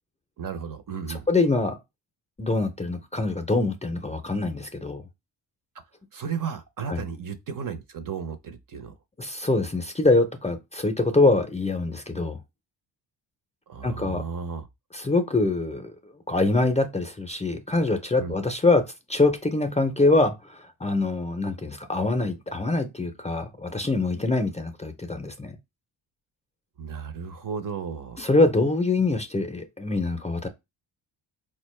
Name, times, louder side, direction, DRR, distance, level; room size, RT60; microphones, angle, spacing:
voice 1, 0.4-1.3 6.1-8.9 13.7-14.7 18.2-18.3 26.8-28.3, right 6 dB, 40° right, 0.6 m, -34 dB
voice 2, 1.3-1.8 2.4-5.0 6.9-7.0 9.2-12.4 13.8-14.2 14.9-15.9 16.3-25.6 28.2-30.5, left 2 dB, 15° left, 0.5 m, -24 dB
4.0 x 2.2 x 3.1 m
supercardioid pair, 65°, 49 cm